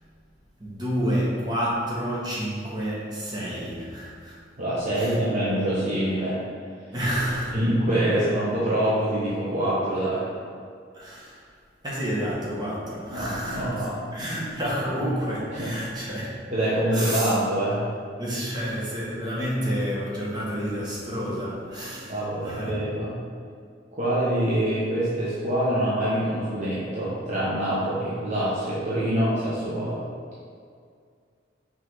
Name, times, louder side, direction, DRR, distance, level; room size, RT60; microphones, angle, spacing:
voice 1, 0.6-4.4 4.9-5.2 6.9-7.6 10.9-11.4 11.8-16.4 16.9-17.3 18.2-22.8, equal, 20° right, -6 dB, 1.3 m, -29 dB
voice 2, 4.6-6.4 7.5-10.2 13.1-14.3 15.6-15.7 16.5-17.8 22.1-23.2 24.0-30.0, right 1 dB, 40° right, -10 dB, 1.1 m, -25 dB
5.7 x 4.7 x 3.8 m, 2.2 s
head